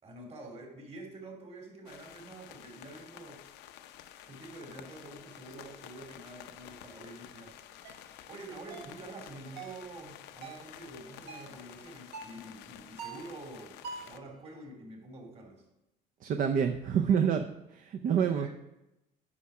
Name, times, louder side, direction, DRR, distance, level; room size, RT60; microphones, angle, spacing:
voice 1, 0.0-3.4 4.2-7.6 8.3-15.6 18.2-18.5, right 2 dB, 40° right, 0 dB, 3.1 m, -47 dB
sound 1, 1.9-14.2, left 11 dB, 90° left, 0.6 m, -51 dB
sound 2, 7.8-8.0 8.7-9.0 9.6-9.8 10.4-10.7 11.3-11.6 12.1-12.4 13.0-13.3 13.8-14.2, right 5 dB, 80° right, 1.2 m, -44 dB
voice 2, 16.2-17.5 17.7-18.5, right 7 dB, 55° right, 7 dB, 0.6 m, -27 dB
10.0 x 6.0 x 4.8 m, 0.91 s
cardioid pair, 110°, 17 cm